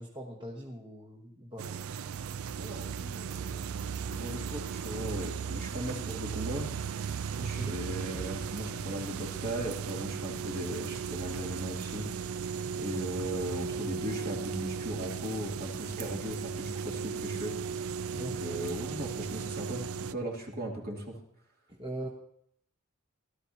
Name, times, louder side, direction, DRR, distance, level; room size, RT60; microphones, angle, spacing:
voice 1, 0.0-1.7 7.4-7.7 18.1-18.3 21.7-22.1, right 1 dB, 20° right, -2 dB, 1.2 m, -41 dB
sound 1, 1.6-20.1, right 6 dB, 75° right, 0.4 m, -36 dB
voice 2, 2.6-6.7 7.4-17.5 18.1-21.2, equal, 45° right, -1 dB, 2.7 m, -38 dB
18.0 x 12.5 x 2.8 m, 0.68 s
head